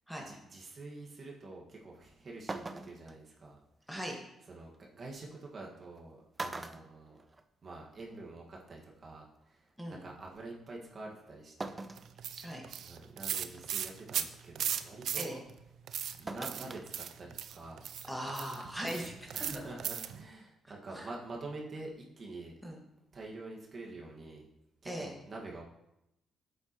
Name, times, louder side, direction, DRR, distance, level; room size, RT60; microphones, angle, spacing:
voice 1, 0.2-3.6 4.5-7.2 7.6-11.7 12.8-15.4 16.1-17.8 19.3-22.6 23.1-24.5 24.8-25.6, right 2 dB, 45° right, -2 dB, 1.8 m, -47 dB
sound 1, 2.0-2.1 2.5-3.1 4.7-4.8 5.8-6.0 6.4-7.8 8.1-8.2 9.4-9.5 11.6-12.1 12.7-12.8 13.3-13.6 16.3-16.9 17.2-17.3, right 2 dB, 25° right, 0.6 m, -41 dB
sound 2, 12.0-15.6 15.9-20.2, right 9 dB, 70° right, 0.5 m, -37 dB
voice 2, 18.0-19.6 20.9-21.1 22.6-22.8 24.8-25.1, equal, ahead, -1 dB, 1.7 m, -39 dB
10.5 x 8.0 x 3.1 m, 0.85 s
cardioid pair, 90°, 0 cm